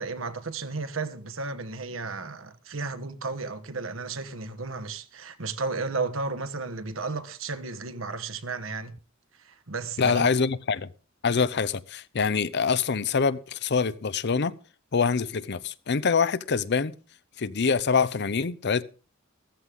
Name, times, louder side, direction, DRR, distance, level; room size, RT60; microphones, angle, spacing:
voice 1, 0.0-9.0 9.4-10.3, right 3 dB, 75° right, 1.3 m, -33 dB
voice 2, 10.0-10.9 11.2-14.5 14.9-16.9 17.4-18.8, left 5 dB, 55° left, 0.7 m, -25 dB
15.0 x 14.5 x 3.7 m
head